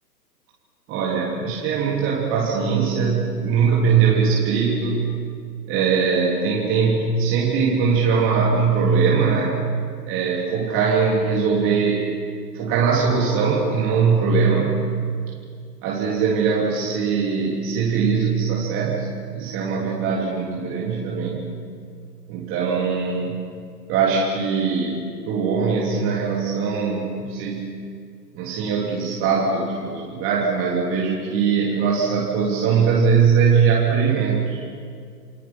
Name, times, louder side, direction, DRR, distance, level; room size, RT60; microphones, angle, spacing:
voice 1, 0.9-5.0 5.7-9.6 10.1-12.1 12.5-14.8 15.8-21.4 22.3-23.4 23.9-27.6 28.3-34.6, right 5 dB, 25° right, -4 dB, 3.3 m, -21 dB
29.0 x 23.5 x 5.8 m, 2.2 s
figure-of-eight pair, 125°, 50 cm